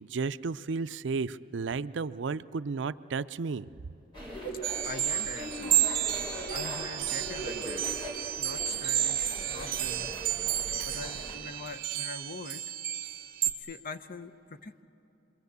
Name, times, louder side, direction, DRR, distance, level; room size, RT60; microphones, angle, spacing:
voice 1, 0.0-3.7, right 4 dB, 80° right, 15 dB, 0.5 m, -33 dB
sound 1, 4.1-11.4, right 1 dB, 25° left, 4.9 m, -40 dB
sound 2, 4.6-13.5, right 12 dB, 55° right, 1.7 m, -31 dB
voice 2, 4.8-5.8 6.5-7.8 8.4-10.1 10.8-12.6 13.6-14.8, left 3 dB, 50° left, 10 dB, 0.8 m, -43 dB
27.5 x 23.0 x 8.1 m, 3.0 s
head